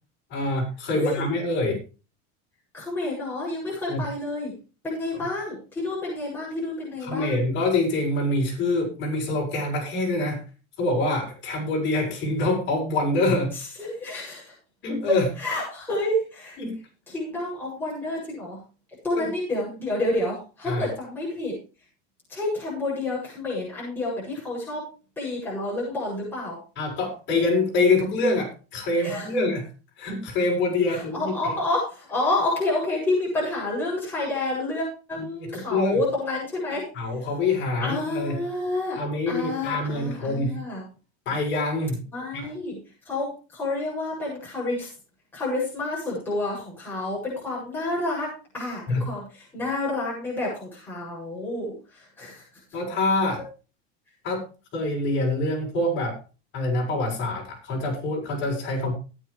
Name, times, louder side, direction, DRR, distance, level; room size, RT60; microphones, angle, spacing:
voice 1, 0.3-1.8 3.9-4.0 7.0-10.4 10.8-13.5 14.8-15.3 16.6-16.8 19.2-19.3 20.7-20.9 26.8-29.7 30.0-31.3 35.4-36.0 36.9-38.4 39.0-40.6 41.3-42.0 42.3-42.5 48.9-49.0 52.7-53.4 54.2-54.4 54.7-56.2 56.5-58.9, left 2 dB, 35° left, -2 dB, 7.3 m, -25 dB
voice 2, 0.9-1.3 2.7-4.5 4.8-7.4 13.5-14.5 15.1-16.6 17.1-18.6 19.0-21.6 22.3-24.9 25.2-26.6 29.0-29.3 30.9-36.8 37.8-40.9 42.1-44.9 45.3-52.4, left 2 dB, 5° left, -7 dB, 7.9 m, -29 dB
19.0 x 9.5 x 3.5 m, 0.34 s
supercardioid pair, 170°, 34 cm